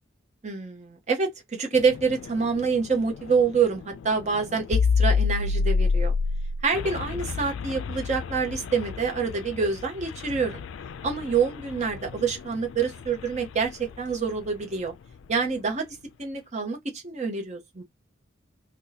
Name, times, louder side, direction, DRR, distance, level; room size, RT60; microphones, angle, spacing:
voice 1, 0.4-1.3 1.6-6.1 6.6-10.6 11.0-14.9 15.3-15.9 16.2-17.8, right 5 dB, 35° right, 0.8 m, -26 dB
sound 1, 1.7-14.5, left 5 dB, 80° left, 0.3 m, -29 dB
2.7 x 2.2 x 3.9 m
head